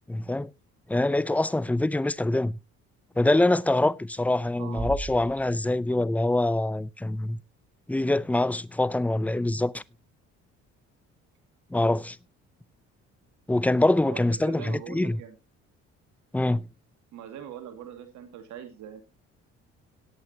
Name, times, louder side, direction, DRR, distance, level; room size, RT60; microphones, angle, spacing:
voice 1, 0.1-0.5 0.9-2.6 3.2-7.4 7.9-9.8 11.7-12.2 13.5-15.2 16.3-16.6, left 2 dB, 5° left, 0.5 m, -24 dB
voice 2, 4.6-4.9 14.1-15.4 17.1-19.0, right 9 dB, 75° right, 2.1 m, -42 dB
Bass drum, 4.8-6.4, right 2 dB, 35° right, 4.0 m, -38 dB
17.5 x 8.5 x 2.8 m
supercardioid pair, 80°, 29 cm